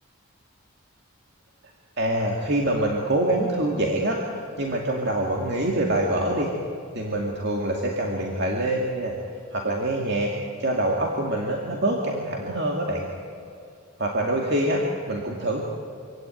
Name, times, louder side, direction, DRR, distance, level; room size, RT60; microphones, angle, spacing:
voice 1, 2.0-6.5 6.9-9.2 9.5-10.3 10.6-13.1 14.0-15.6, right 1 dB, 50° right, 0 dB, 2.4 m, -25 dB
26.0 x 16.5 x 9.3 m, 2.5 s
head